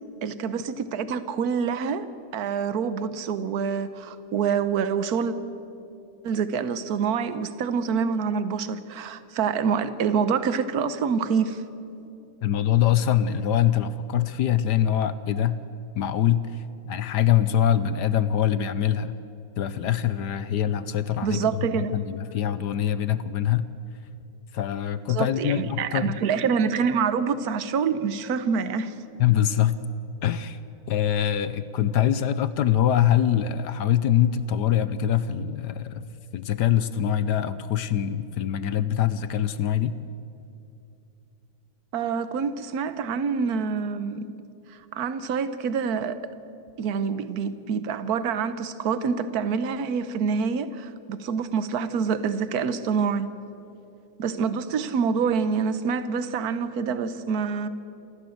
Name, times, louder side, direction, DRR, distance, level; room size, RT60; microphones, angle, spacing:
voice 1, 0.2-2.1 2.3-5.3 6.2-11.6 21.2-22.0 25.1-28.9 41.9-44.3 44.9-46.2 46.8-53.3 54.2-57.7, right 6 dB, 55° right, 13 dB, 1.3 m, -26 dB
voice 2, 12.4-15.6 16.0-19.2 19.6-21.4 21.7-23.7 24.5-26.2 29.2-29.8 30.2-30.6 30.9-36.0 36.3-39.9, left 10 dB, 65° left, 14 dB, 1.2 m, -24 dB
27.5 x 15.0 x 7.9 m, 2.8 s
omnidirectional pair, 2.1 m